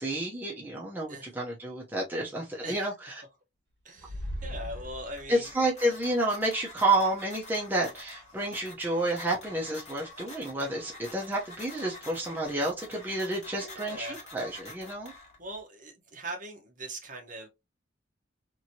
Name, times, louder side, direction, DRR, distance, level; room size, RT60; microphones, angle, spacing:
voice 1, 0.0-3.2 5.3-15.1, right 1 dB, 10° right, 0.6 m, -30 dB
voice 2, 2.6-2.9 3.8-5.5 13.6-14.2 15.4-17.5, right 1 dB, 40° right, 0.9 m, -41 dB
sound 1, 4.0-5.6, equal, 60° right, 1.5 m, -38 dB
sound 2, 4.9-15.6, left 2 dB, 35° left, 1.4 m, -48 dB
3.0 x 2.6 x 2.7 m
head